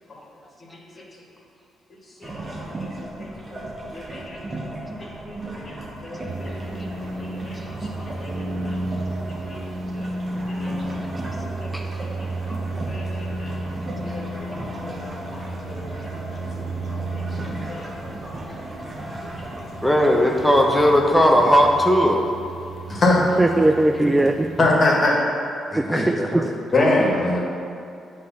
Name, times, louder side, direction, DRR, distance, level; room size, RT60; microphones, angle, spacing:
voice 1, 2.2-3.6 3.9-4.4 5.0-5.7 6.0-8.8 9.2-9.6 9.9-10.1 10.5-11.3 11.6-12.3 12.7-13.5 14.0-16.0 16.3-16.4 16.9-18.1 18.5-18.6 19.3-19.4 22.9-23.2 24.6-25.2 25.9-26.0 26.7-27.4, left 2 dB, 45° left, -3 dB, 1.7 m, -27 dB
sound 1, 2.2-21.7, right 1 dB, 35° right, 1.1 m, -36 dB
sound 2, 6.3-24.7, right 2 dB, 60° right, 1.1 m, -33 dB
voice 2, 19.8-22.3 24.0-24.1 25.7-26.5, equal, ahead, 0 dB, 0.9 m, -18 dB
voice 3, 23.4-24.5 25.8-26.5, right 1 dB, 15° right, 6 dB, 0.3 m, -20 dB
8.2 x 3.1 x 5.7 m, 2.5 s
hypercardioid pair, 50°, 0 cm